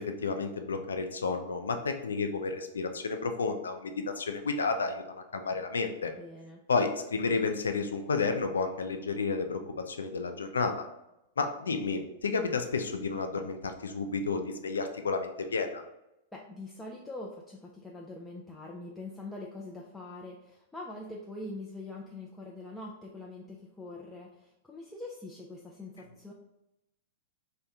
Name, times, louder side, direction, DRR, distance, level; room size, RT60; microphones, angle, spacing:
voice 1, 0.0-6.1 6.7-9.6 9.9-10.9 11.4-15.8, left 4 dB, 80° left, 6 dB, 0.4 m, -31 dB
voice 2, 6.2-6.7 16.3-26.3, left 2 dB, 10° left, -2 dB, 0.4 m, -43 dB
2.9 x 2.2 x 3.5 m, 0.87 s
hypercardioid pair, 100°, 0 cm